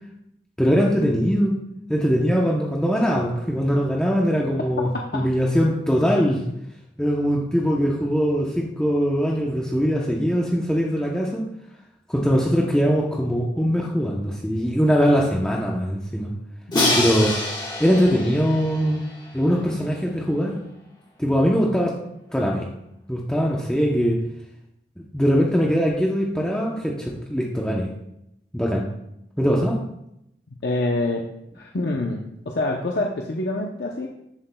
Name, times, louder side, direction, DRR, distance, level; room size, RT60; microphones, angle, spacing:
voice 1, 0.6-1.5 1.9-6.4 7.0-11.4 12.1-16.3 16.9-17.4 17.8-19.0 19.3-20.6 21.2-21.9 22.3-22.7 23.1-24.2 25.1-27.9 28.5-28.9 29.4-29.8, equal, 5° left, -3 dB, 0.7 m, -21 dB
voice 2, 4.9-5.3 16.7-17.1 30.6-31.2 31.5-34.1, left 2 dB, 70° left, 0 dB, 0.7 m, -26 dB
Crash cymbal, 16.7-19.7, left 2 dB, 25° left, 1.5 m, -26 dB
10.5 x 7.6 x 2.3 m, 0.81 s
head